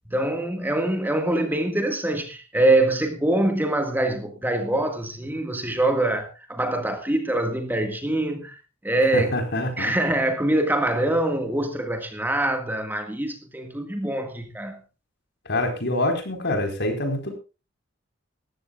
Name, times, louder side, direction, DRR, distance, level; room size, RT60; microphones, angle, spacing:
voice 1, 0.1-8.6 8.8-9.4 9.8-14.8, right 1 dB, 10° right, 1.8 m, -24 dB
voice 2, 9.1-9.9 15.5-17.3, left 1 dB, 60° left, 4.6 m, -25 dB
19.5 x 15.0 x 2.4 m
head